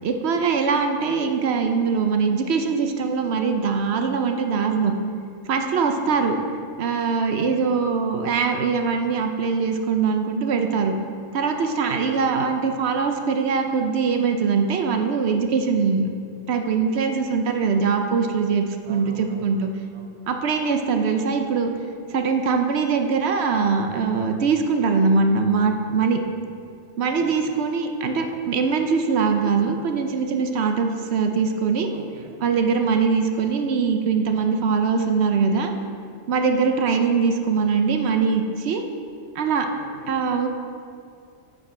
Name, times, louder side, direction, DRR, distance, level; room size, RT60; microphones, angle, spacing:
voice 1, 0.0-4.9 5.5-6.4 6.8-10.9 11.3-16.1 16.5-19.7 20.3-21.7 22.1-26.2 27.0-31.9 32.4-35.7 36.3-38.8 39.4-39.7 40.1-40.5, right 5 dB, 65° right, 5 dB, 0.8 m, -22 dB
voice 2, 18.9-19.6 19.9-20.1 27.2-27.4 28.8-28.9 31.9-32.4 32.8-33.0 39.8-40.1, right 3 dB, 45° right, 4 dB, 0.3 m, -44 dB
8.9 x 5.4 x 4.3 m, 2.3 s
omnidirectional pair, 1.3 m